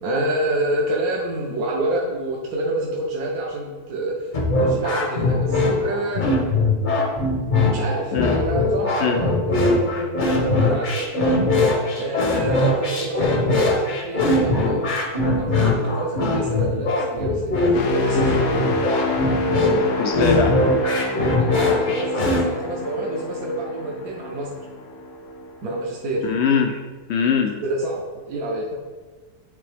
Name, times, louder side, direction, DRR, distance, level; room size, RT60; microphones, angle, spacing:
voice 1, 0.0-6.3 7.7-11.4 12.0-18.6 20.4-20.5 21.5-24.5 25.6-26.2 27.6-28.7, right 1 dB, 70° right, -2 dB, 1.3 m, -28 dB
sound 1, 4.3-22.4, left 2 dB, 40° left, 0.8 m, -21 dB
sound 2, 17.7-25.6 26.0-26.3, left 1 dB, 90° left, 1.3 m, -27 dB
voice 2, 20.0-20.5 26.2-26.8 27.1-27.6, left 6 dB, 65° left, 5 dB, 0.7 m, -21 dB
9.1 x 3.7 x 3.4 m, 1.3 s
omnidirectional pair, 1.7 m